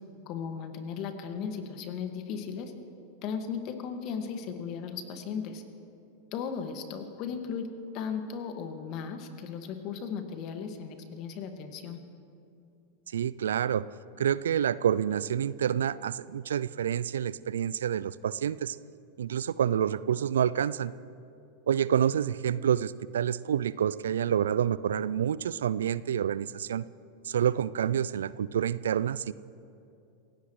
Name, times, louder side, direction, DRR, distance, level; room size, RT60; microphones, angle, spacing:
voice 1, 0.3-2.7 3.2-5.6 6.3-12.0, left 6 dB, 45° left, 6 dB, 1.9 m, -36 dB
voice 2, 13.1-13.8 14.2-18.8 19.2-20.9 21.7-26.8 27.3-29.3, right 9 dB, 75° right, 19 dB, 0.3 m, -28 dB
27.5 x 16.5 x 3.2 m, 2.7 s
hypercardioid pair, 90°, 0 cm